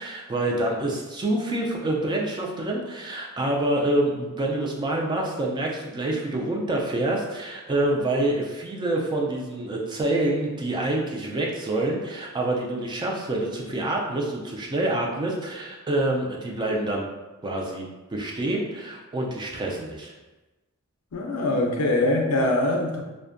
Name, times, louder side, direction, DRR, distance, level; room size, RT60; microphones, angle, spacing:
voice 1, 0.0-17.1 17.4-17.9 18.1-20.1, right 1 dB, 20° right, -1 dB, 0.3 m, -27 dB
voice 2, 21.1-23.0, left 1 dB, 70° left, 1 dB, 0.4 m, -23 dB
2.5 x 2.1 x 2.5 m, 1.1 s
head